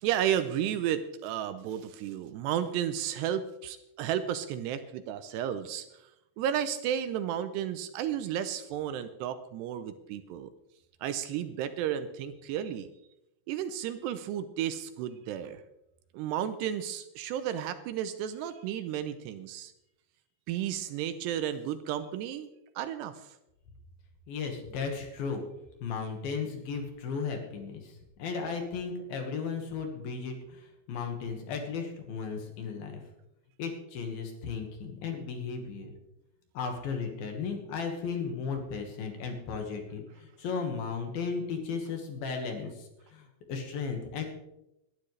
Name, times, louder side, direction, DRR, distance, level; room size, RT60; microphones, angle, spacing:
voice 1, 0.0-5.9 6.4-10.5 11.0-12.9 13.5-15.6 16.1-19.7 20.5-22.5 22.8-23.1, right 10 dB, 80° right, 10 dB, 2.6 m, -33 dB
voice 2, 24.3-25.4 25.8-27.9 28.2-33.0 33.6-35.9 36.5-44.2, left 5 dB, 65° left, 4 dB, 3.1 m, -35 dB
20.5 x 12.0 x 3.2 m, 0.88 s
omnidirectional pair, 5.2 m